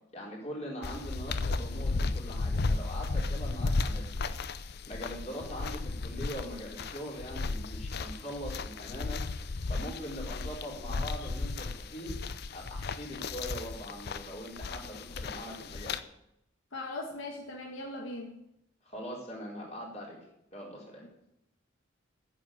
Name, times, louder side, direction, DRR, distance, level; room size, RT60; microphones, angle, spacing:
voice 1, 0.1-9.2 9.7-12.1 12.5-16.0 18.8-20.2 20.5-21.0, equal, 35° left, -3 dB, 4.5 m, -42 dB
sound 1, 0.8-16.0, left 3 dB, 55° left, 0.6 m, -34 dB
voice 2, 16.7-18.4, left 2 dB, 75° left, 1 dB, 1.7 m, -39 dB
10.0 x 7.5 x 8.9 m, 0.81 s
head